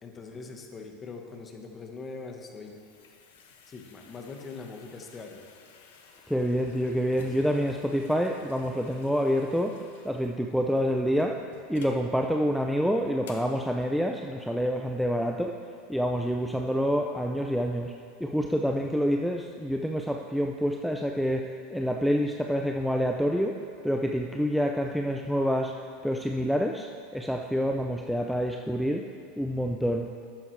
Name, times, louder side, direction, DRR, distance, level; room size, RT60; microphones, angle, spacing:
voice 1, 0.0-2.8 3.7-5.4 7.1-7.5 7.9-8.1, left 4 dB, 25° left, 3 dB, 1.3 m, -43 dB
sound 1, 2.2-12.1 12.6-12.7 13.2-13.6, left 5 dB, 85° left, 1.1 m, -52 dB
voice 2, 6.3-11.4 11.7-15.6 15.9-17.9 18.2-25.8 26.0-26.9 27.1-30.1, equal, ahead, 2 dB, 0.5 m, -27 dB
12.0 x 9.5 x 3.3 m, 2.4 s
supercardioid pair, 115°, 0 cm